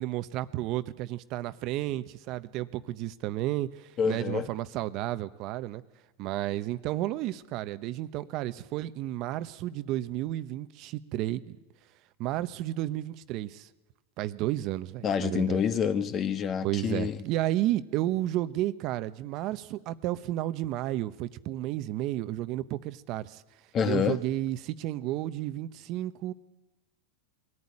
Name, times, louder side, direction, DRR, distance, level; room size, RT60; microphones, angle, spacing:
voice 1, 0.0-5.8 6.2-11.6 12.2-13.7 14.2-15.6 16.6-23.4 23.8-26.3, right 14 dB, 45° right, 1.0 m, -32 dB
voice 2, 4.0-4.5 15.0-17.2 23.7-24.2, left 7 dB, 35° left, 1.5 m, -27 dB
22.0 x 14.5 x 9.8 m
hypercardioid pair, 120°, 0 cm